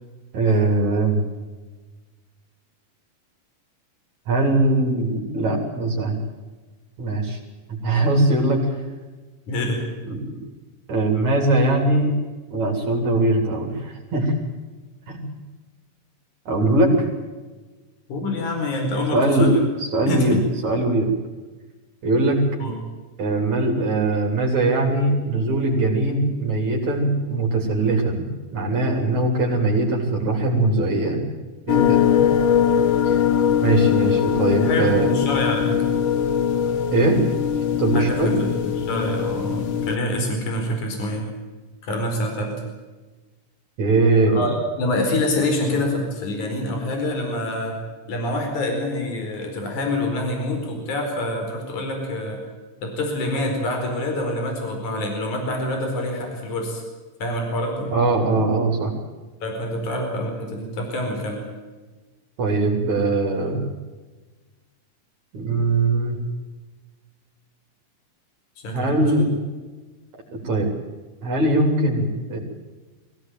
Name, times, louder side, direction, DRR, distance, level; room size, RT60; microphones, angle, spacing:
voice 1, 0.3-1.2 4.3-6.2 7.0-7.4 7.7-8.7 10.0-10.4 10.9-12.1 12.5-14.3 15.1-15.2 16.5-17.1 19.1-19.5 19.8-21.1 22.0-22.4 23.2-28.3 28.5-31.3 31.7-32.3 33.1-33.2 33.6-35.1 36.9-37.2 37.8-38.4 43.8-44.5 57.9-58.9 62.4-63.6 65.3-66.2 68.7-69.3 70.3-70.7 71.2-72.4, right 2 dB, 55° right, 1 dB, 4.8 m, -21 dB
voice 2, 9.5-9.8 18.1-19.7 20.1-20.4 22.6-22.8 34.6-35.8 37.9-41.3 41.8-42.5 44.3-47.8 48.1-52.4 52.8-56.8 57.2-57.9 59.4-61.4 68.6-68.9, left 1 dB, 60° left, 3 dB, 6.0 m, -26 dB
sound 1, 31.7-40.0, left 8 dB, 85° left, 1.1 m, -21 dB
22.5 x 17.0 x 9.1 m, 1.3 s
omnidirectional pair, 3.9 m